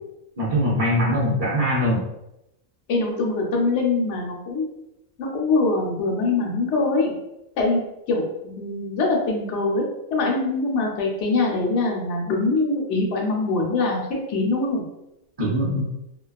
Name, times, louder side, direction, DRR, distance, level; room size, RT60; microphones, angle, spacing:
voice 1, 0.4-2.0 15.4-15.8, equal, 50° right, -7 dB, 0.4 m, -22 dB
voice 2, 2.9-4.6 5.2-7.1 7.6-7.8 8.1-9.8 10.1-14.0 14.3-14.8, left 3 dB, 65° left, -1 dB, 0.9 m, -23 dB
2.3 x 2.2 x 2.3 m, 0.87 s
omnidirectional pair, 1.4 m